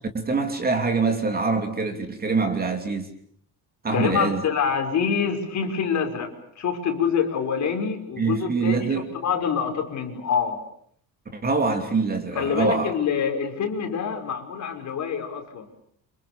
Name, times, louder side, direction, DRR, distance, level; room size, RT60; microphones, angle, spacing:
voice 1, 0.1-3.1 3.8-4.4 8.2-9.2 11.3-12.9, right 4 dB, 25° right, 3.0 m, -24 dB
voice 2, 3.9-8.9 9.1-10.7 12.3-15.7, left 6 dB, 45° left, 5.5 m, -26 dB
29.5 x 27.5 x 6.8 m
cardioid pair, 180°, 39 cm